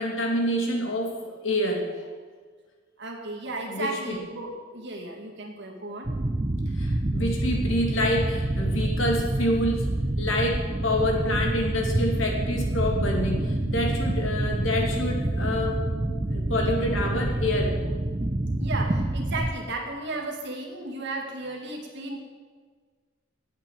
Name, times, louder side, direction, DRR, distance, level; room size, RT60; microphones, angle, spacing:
voice 1, 0.0-1.9 3.7-4.2 6.8-15.9 16.3-17.7, left 1 dB, 75° left, 1 dB, 2.4 m, -27 dB
voice 2, 3.0-6.1 18.6-22.2, right 2 dB, 60° right, 1 dB, 2.2 m, -34 dB
sound 1, 6.0-19.5, right 1 dB, 25° right, 0.6 m, -27 dB
9.0 x 8.4 x 8.7 m, 1.5 s
head